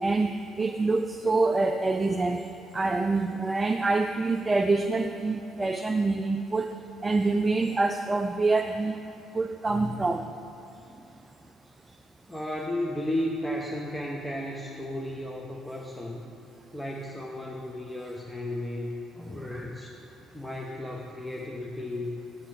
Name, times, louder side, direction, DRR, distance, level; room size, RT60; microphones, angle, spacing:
voice 1, 0.0-2.4 2.7-6.8 7.0-9.0 9.3-10.3, right 3 dB, 20° right, 6 dB, 0.3 m, -26 dB
voice 2, 9.7-10.2 12.3-16.3 16.7-19.9 20.3-22.2, left 1 dB, 10° left, -2 dB, 0.8 m, -34 dB
7.4 x 7.1 x 4.9 m, 2.9 s
figure-of-eight pair, 50°, 0 cm